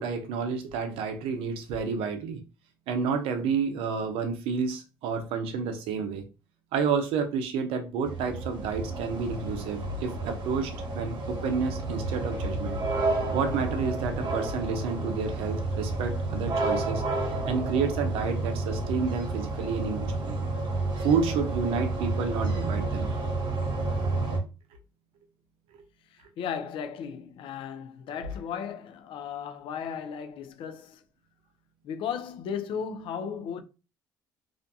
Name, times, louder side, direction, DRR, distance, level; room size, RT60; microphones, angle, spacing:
voice 1, 0.0-2.4 2.9-6.3 6.7-12.8 13.3-17.0 17.5-20.4 21.0-23.1, right 5 dB, 80° right, 0.5 m, -30 dB
sound 1, 8.0-24.4, right 2 dB, 50° right, 0.9 m, -30 dB
voice 2, 26.1-31.0 31.8-33.6, left 7 dB, 65° left, 0.4 m, -35 dB
2.4 x 2.2 x 2.6 m
supercardioid pair, 70°, 9 cm